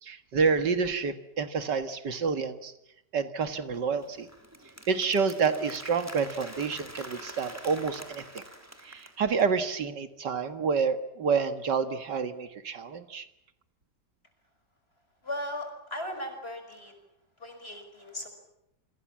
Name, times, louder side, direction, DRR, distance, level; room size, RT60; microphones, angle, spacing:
voice 1, 0.0-2.7 3.1-4.3 4.9-8.4 8.8-13.3, right 5 dB, 85° right, 10 dB, 2.3 m, -28 dB
Applause, 3.7-9.5, equal, 10° right, 3.3 m, -46 dB
voice 2, 15.2-16.9 17.4-18.3, left 1 dB, 35° left, 7 dB, 6.1 m, -37 dB
27.5 x 26.0 x 7.4 m, 0.82 s
omnidirectional pair, 1.8 m